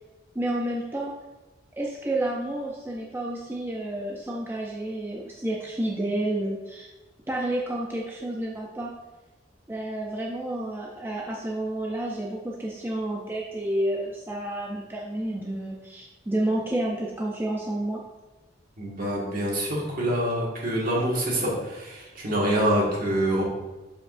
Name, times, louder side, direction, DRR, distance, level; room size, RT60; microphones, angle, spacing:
voice 1, 0.3-1.2 1.8-6.9 7.3-8.9 9.7-18.0, right 1 dB, 10° right, -2 dB, 0.5 m, -30 dB
voice 2, 18.8-23.4, right 1 dB, 50° right, -3 dB, 1.8 m, -26 dB
7.4 x 5.2 x 2.6 m, 1.1 s
head